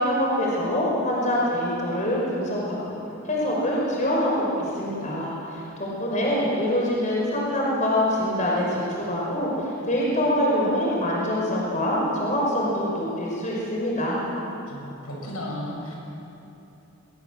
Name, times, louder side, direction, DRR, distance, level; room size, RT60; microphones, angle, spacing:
voice 1, 0.0-3.0 3.3-14.2, equal, 35° left, -4 dB, 5.3 m, -25 dB
voice 2, 14.7-16.0, left 1 dB, 80° left, -1 dB, 6.6 m, -34 dB
22.0 x 21.0 x 7.7 m, 3.0 s
head